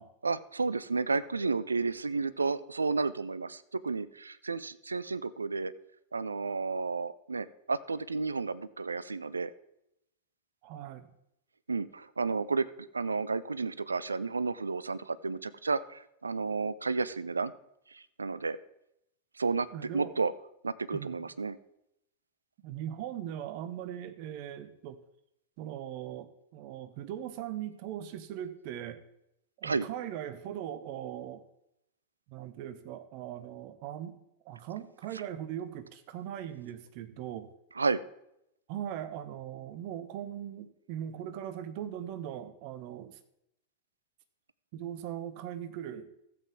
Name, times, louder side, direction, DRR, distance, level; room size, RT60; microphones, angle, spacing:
voice 1, 0.2-5.7 6.1-9.5 11.7-12.7 12.9-17.5 17.9-18.6 19.4-19.7 19.9-20.3 20.6-21.6 29.6-29.9 37.8-38.0, right 4 dB, 75° right, 17 dB, 0.4 m, -32 dB
voice 2, 10.6-11.1 19.7-20.1 20.9-21.2 22.6-25.0 25.6-29.0 29.6-31.4 32.3-34.2 34.4-37.5 38.7-43.2 44.7-46.1, right 10 dB, 45° right, 10 dB, 0.9 m, -40 dB
14.5 x 7.9 x 3.5 m, 0.81 s
figure-of-eight pair, 90°, 0 cm